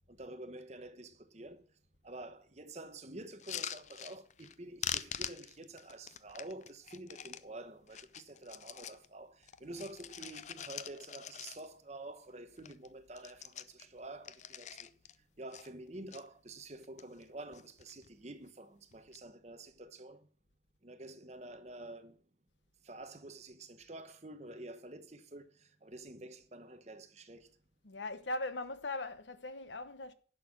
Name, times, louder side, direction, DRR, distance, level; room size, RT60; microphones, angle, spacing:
voice 1, 0.1-1.7 2.0-14.9 15.4-20.3 20.8-22.2 22.8-27.5, right 2 dB, 35° right, 1.0 m, -49 dB
sound 1, 3.3-4.6 4.8-7.4 7.9-9.1 9.4-11.9 12.2-12.3 12.6-12.9 13.1-15.2 15.5-16.2 16.8-17.3 17.5-18.1 18.9-19.2, left 10 dB, 40° left, 0.5 m, -44 dB
voice 2, 27.8-30.1, left 2 dB, 80° left, 1.0 m, -39 dB
11.0 x 6.3 x 6.3 m
head